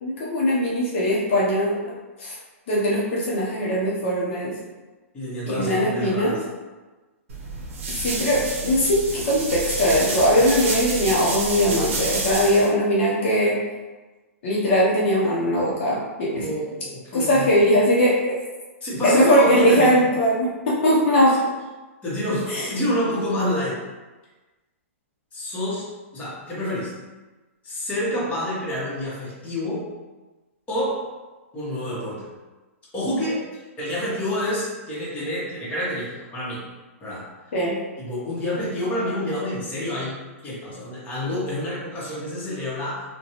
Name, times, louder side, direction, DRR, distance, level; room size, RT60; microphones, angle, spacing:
voice 1, 0.0-1.7 2.2-2.3 2.7-4.5 5.5-6.4 8.0-13.6 14.4-16.4 17.1-18.4 19.0-21.4 22.5-22.7 37.5-37.7, equal, 55° left, -6 dB, 0.7 m, -20 dB
voice 2, 5.1-6.4 16.4-17.6 18.8-20.0 22.0-23.8 25.3-26.9 27.6-29.9 30.7-31.1 31.5-32.3 32.9-36.6 37.0-37.3 38.0-43.0, left 1 dB, 20° left, -8 dB, 1.0 m, -28 dB
sound 1, 7.3-12.7, right 3 dB, 60° right, 0.7 m, -29 dB
2.5 x 2.2 x 2.8 m, 1.2 s
hypercardioid pair, 130°, 8 cm